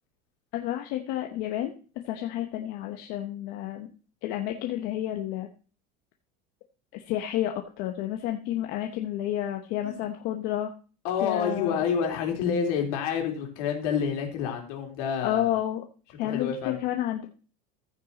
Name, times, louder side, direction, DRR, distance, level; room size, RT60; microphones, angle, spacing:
voice 1, 0.5-1.7 2.1-3.9 4.2-5.5 6.9-10.7 11.2-11.8 15.2-15.8 16.2-17.3, left 12 dB, 55° left, 5 dB, 1.0 m, -30 dB
voice 2, 11.0-15.5 16.2-16.8, left 7 dB, 70° left, 2 dB, 3.1 m, -28 dB
14.5 x 5.5 x 4.1 m, 0.38 s
cardioid pair, 165°, 20 cm